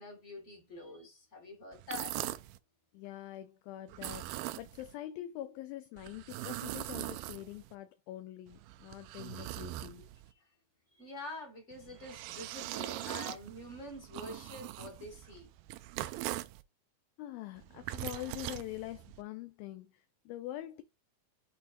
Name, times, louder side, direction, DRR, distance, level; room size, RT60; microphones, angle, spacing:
voice 1, 0.0-2.2 10.4-10.5 10.9-15.5, left 2 dB, 30° left, 1.4 m, -46 dB
sound 1, 1.7-2.6 3.9-4.9 6.0-7.7 8.5-10.3 11.7-16.6 17.6-19.2, right 16 dB, 80° right, 2.0 m, -41 dB
voice 2, 2.9-10.1 17.2-20.8, left 14 dB, 80° left, 2.2 m, -44 dB
8.4 x 4.3 x 2.6 m
omnidirectional pair, 4.5 m